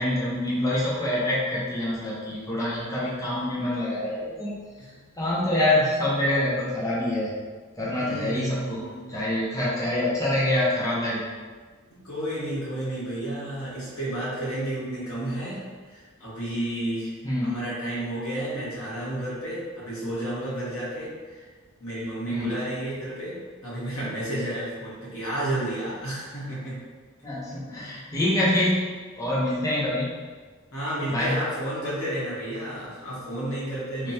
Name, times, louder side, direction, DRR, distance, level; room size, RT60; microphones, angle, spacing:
voice 1, 0.0-4.6 5.2-7.3 7.8-8.8 9.1-11.3 17.2-17.5 22.3-22.5 27.2-30.2 31.1-31.4 34.0-34.1, left 1 dB, 15° left, -7 dB, 0.6 m, -26 dB
voice 2, 8.0-9.1 11.9-17.1 17.4-21.5 21.8-26.8 27.7-28.0 30.7-34.1, right 1 dB, 85° left, -8 dB, 1.4 m, -31 dB
3.3 x 2.2 x 4.2 m, 1.5 s
head